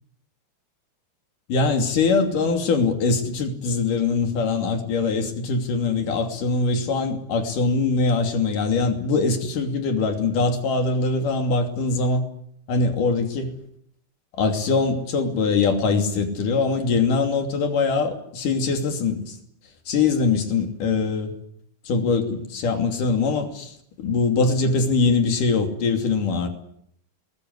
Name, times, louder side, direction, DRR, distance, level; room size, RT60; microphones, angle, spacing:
voice 1, 1.5-12.2 12.7-13.4 14.3-19.4 19.9-21.3 21.9-26.5, left 4 dB, 60° left, 5 dB, 4.3 m, -22 dB
20.5 x 20.0 x 9.7 m, 0.72 s
omnidirectional pair, 4.3 m